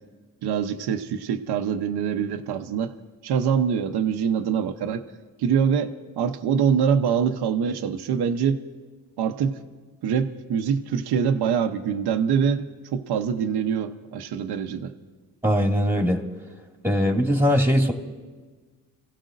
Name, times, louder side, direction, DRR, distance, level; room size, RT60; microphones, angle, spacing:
voice 1, 0.4-2.9 3.2-5.0 5.4-8.6 9.2-9.6 10.0-14.9, right 7 dB, 80° right, 6 dB, 0.9 m, -24 dB
voice 2, 15.4-16.2 16.8-17.9, equal, 5° right, 2 dB, 2.2 m, -20 dB
27.5 x 16.0 x 2.6 m, 1.4 s
cardioid pair, 70°, 39 cm